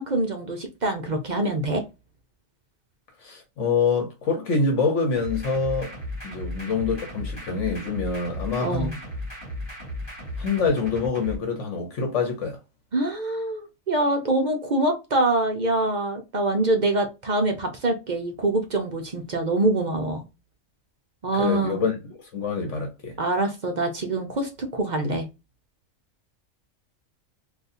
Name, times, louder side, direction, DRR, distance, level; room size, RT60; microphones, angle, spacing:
voice 1, 0.0-1.8 8.6-9.0 12.9-20.2 21.2-21.8 23.2-25.3, right 2 dB, 45° right, 0.7 m, -25 dB
voice 2, 3.2-5.9 6.2-9.0 10.4-12.6 21.3-23.2, left 4 dB, 65° left, 1.2 m, -26 dB
sound 1, 5.2-11.4, left 1 dB, 20° left, 1.6 m, -35 dB
3.9 x 2.7 x 2.6 m
omnidirectional pair, 1.4 m